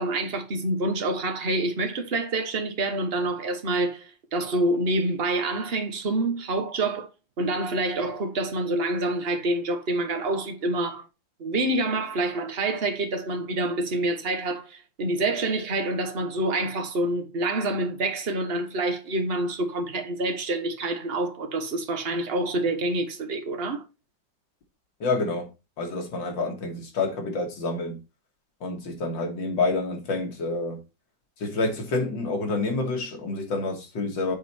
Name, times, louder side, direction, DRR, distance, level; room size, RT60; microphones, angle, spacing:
voice 1, 0.0-7.1 7.4-11.0 11.4-23.8, right 2 dB, 35° right, 1.3 m, -27 dB
voice 2, 25.0-25.5 25.8-28.0 28.6-30.8 31.4-34.4, left 3 dB, 90° left, 2.5 m, -28 dB
8.4 x 4.1 x 4.3 m
omnidirectional pair, 2.0 m